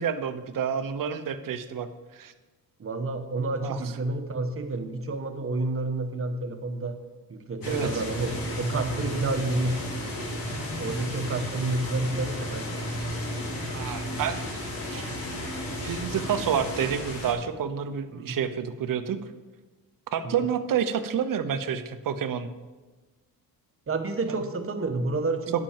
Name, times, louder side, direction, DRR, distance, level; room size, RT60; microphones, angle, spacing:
voice 1, 0.0-1.9 2.1-2.3 3.6-3.8 7.6-8.0 13.7-15.1 15.8-19.2 20.1-22.5 25.5-25.6, right 8 dB, 60° right, 10 dB, 0.9 m, -29 dB
voice 2, 2.8-7.0 7.3-10.3 10.8-12.8 18.1-18.4 20.2-20.3 23.9-25.6, right 2 dB, 35° right, 6 dB, 1.2 m, -30 dB
sound 1, 7.6-17.3, left 1 dB, 65° left, 3.8 m, -33 dB
10.5 x 6.1 x 7.3 m, 1.2 s
cardioid pair, 110°, 37 cm